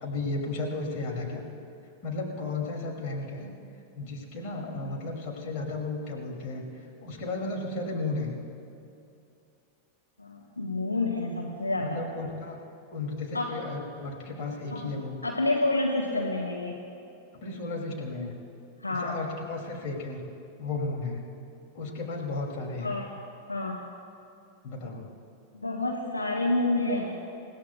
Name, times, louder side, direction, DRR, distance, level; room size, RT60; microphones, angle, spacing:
voice 1, 0.0-1.4 2.0-3.5 4.0-6.7 7.0-8.3 11.8-12.6 12.9-15.2 17.4-18.3 19.0-20.2 20.6-21.2 21.7-22.9 24.6-25.0, left 3 dB, 45° left, 0 dB, 2.8 m, -34 dB
voice 2, 10.2-12.1 13.3-13.5 14.7-14.9 15.2-16.8 18.8-19.2 22.8-23.1 23.5-23.8 25.5-27.2, left 2 dB, 80° left, 0 dB, 1.2 m, -29 dB
29.0 x 16.5 x 2.4 m, 2.7 s
figure-of-eight pair, 90°, 0 cm